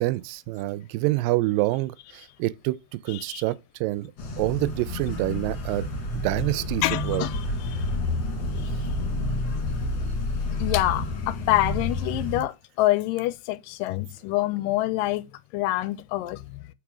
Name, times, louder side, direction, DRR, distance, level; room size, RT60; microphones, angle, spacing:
voice 1, 0.0-2.8 3.0-4.1 4.4-5.9 6.1-7.3, right 19 dB, 85° right, 2.2 m, -27 dB
voice 2, 3.1-3.4 6.8-7.8 8.6-8.7 10.6-15.3 15.5-16.6, left 16 dB, 85° left, 2.2 m, -26 dB
sound 1, 4.2-12.4, left 2 dB, 45° left, 1.9 m, -29 dB
5.2 x 4.9 x 6.0 m
omnidirectional pair, 4.0 m